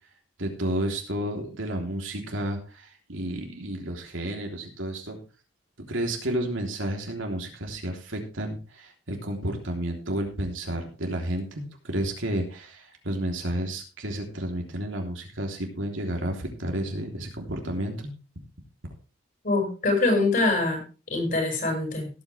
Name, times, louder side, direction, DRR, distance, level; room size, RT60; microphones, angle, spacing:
voice 1, 0.4-5.2 5.9-18.1, right 1 dB, 90° right, 2 dB, 3.5 m, -31 dB
voice 2, 19.4-20.8 21.1-22.1, left 2 dB, 45° left, 2 dB, 6.3 m, -24 dB
17.5 x 9.0 x 3.4 m, 0.33 s
head